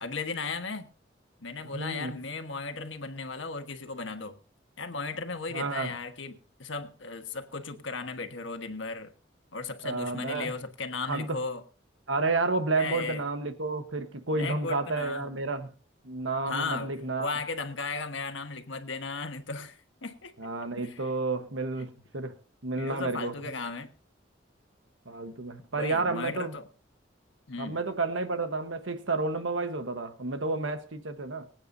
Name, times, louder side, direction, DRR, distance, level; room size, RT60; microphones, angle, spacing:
voice 1, 0.0-0.9 1.4-4.4 4.8-9.1 9.5-11.6 12.8-13.2 14.3-15.3 16.5-16.9 17.2-20.3 20.8-21.0 22.8-23.9 25.8-26.7 27.5-27.8, left 4 dB, 80° left, 1.4 m, -36 dB
voice 2, 1.7-2.2 5.5-5.9 9.8-10.5 11.1-11.4 12.1-15.7 16.0-17.3 20.4-22.4 22.6-23.5 25.1-26.6 27.6-31.5, right 3 dB, 85° right, 1.2 m, -31 dB
24.5 x 8.9 x 2.7 m
head